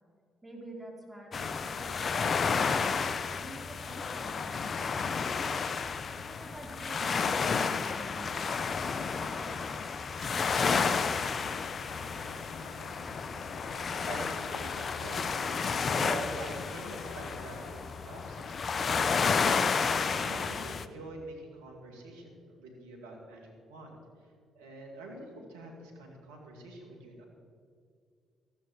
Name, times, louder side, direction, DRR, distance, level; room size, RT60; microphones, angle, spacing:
voice 1, 0.4-2.8 3.3-5.1 6.1-9.8 10.3-11.2, right 1 dB, 10° right, 0 dB, 3.8 m, -48 dB
sound 1, 1.3-20.9, left 5 dB, 45° left, 0.8 m, -31 dB
sound 2, 10.1-17.7, left 3 dB, 75° left, 3.1 m, -47 dB
voice 2, 14.0-19.9 20.2-24.0 24.5-27.2, right 2 dB, 90° right, 1 dB, 2.4 m, -46 dB
14.0 x 13.0 x 4.7 m, 2.3 s
hypercardioid pair, 50°, 0 cm